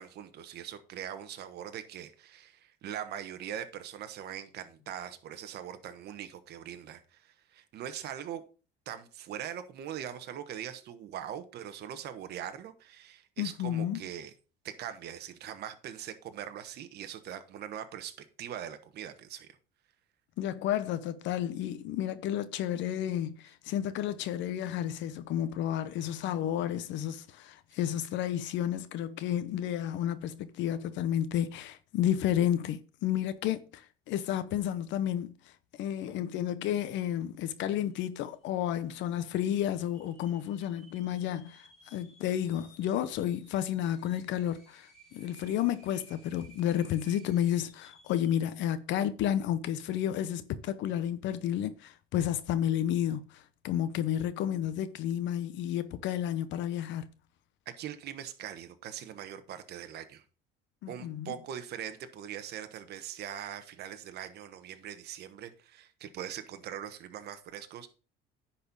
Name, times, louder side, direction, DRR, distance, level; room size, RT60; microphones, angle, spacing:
voice 1, 0.0-8.4 8.9-14.3 14.6-19.6 57.7-60.2 60.9-67.9, right 10 dB, 55° right, 1.1 m, -41 dB
voice 2, 13.4-14.0 20.4-35.3 35.8-57.1 60.8-61.3, left 11 dB, 65° left, 0.8 m, -31 dB
sound 1, 37.5-37.6 37.8-38.4 38.9-39.0 39.7-48.5, right 2 dB, ahead, 3.9 m, -59 dB
10.0 x 4.3 x 5.4 m
cardioid pair, 130°, 20 cm